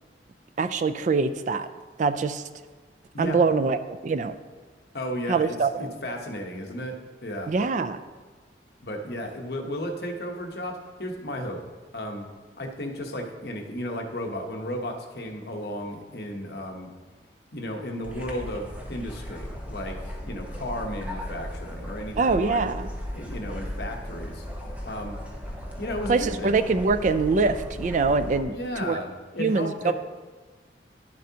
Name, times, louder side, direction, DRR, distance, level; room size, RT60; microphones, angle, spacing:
voice 1, 0.6-1.7 2.0-2.4 3.2-4.4 5.3-5.9 7.5-8.0 22.2-22.9 26.1-29.0 29.4-29.9, right 4 dB, 45° right, 11 dB, 0.3 m, -24 dB
voice 2, 4.9-7.5 8.8-11.6 11.9-12.3 12.6-16.9 17.5-20.0 20.2-22.7 23.1-24.4 24.8-25.2 25.8-26.6 28.4-29.9, equal, 60° left, 2 dB, 1.0 m, -34 dB
sound 1, 18.0-28.4, equal, 10° right, 0.9 m, -36 dB
10.5 x 7.4 x 2.8 m, 1.4 s
head